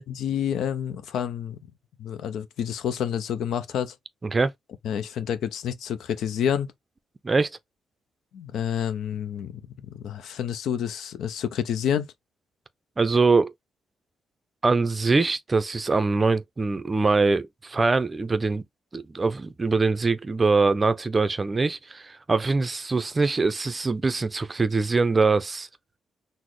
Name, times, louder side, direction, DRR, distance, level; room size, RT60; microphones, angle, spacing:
voice 1, 0.1-1.6 2.0-4.0 4.8-6.7 8.3-9.6 9.9-12.1, left 9 dB, 80° left, 0.4 m, -28 dB
voice 2, 13.0-13.5 14.6-18.6 18.9-25.7, right 3 dB, 30° right, 0.4 m, -23 dB
4.0 x 2.0 x 3.1 m
cardioid pair, 85°, 0 cm